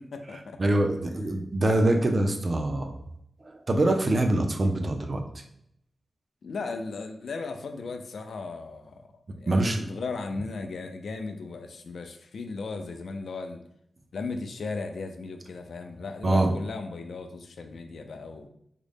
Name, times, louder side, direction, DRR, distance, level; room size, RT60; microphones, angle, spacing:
voice 1, 0.0-0.6 1.1-1.3 6.4-9.1 9.4-13.6 14.1-18.5, left 4 dB, 75° left, 6 dB, 0.4 m, -36 dB
voice 2, 0.6-3.0 3.4-5.2 9.5-9.9 16.2-16.5, right 1 dB, 35° right, 4 dB, 0.4 m, -24 dB
3.7 x 2.1 x 3.4 m, 0.73 s
wide cardioid pair, 155°, 0 cm